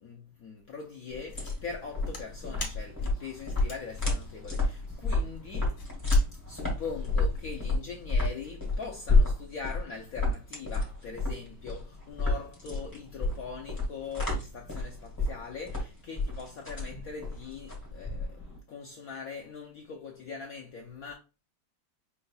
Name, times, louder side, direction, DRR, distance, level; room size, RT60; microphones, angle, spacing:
voice 1, 0.0-5.8 6.5-18.4 18.7-21.1, left 5 dB, 80° left, 0.8 m, -41 dB
sound 1, 1.1-18.6, left 2 dB, 10° left, 1.8 m, -30 dB
sound 2, 1.3-7.6, left 4 dB, 45° left, 1.7 m, -41 dB
5.6 x 4.0 x 2.3 m
omnidirectional pair, 2.3 m